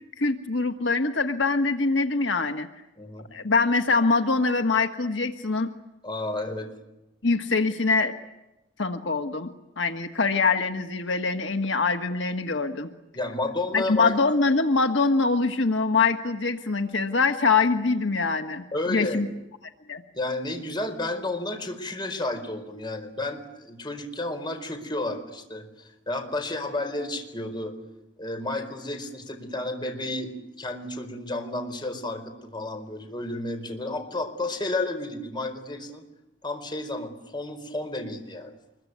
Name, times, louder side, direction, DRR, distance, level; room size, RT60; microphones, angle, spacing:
voice 1, 0.2-2.7 3.3-5.7 7.2-8.1 8.8-9.5 9.8-12.9 13.7-19.3 19.9-20.0, left 4 dB, 85° left, 6 dB, 1.6 m, -24 dB
voice 2, 3.0-3.3 6.0-6.7 13.1-14.2 18.7-19.2 20.1-27.7 28.2-30.3 30.6-36.0 36.4-38.5, left 2 dB, 25° left, 6 dB, 4.6 m, -31 dB
25.5 x 22.5 x 9.6 m, 0.94 s
head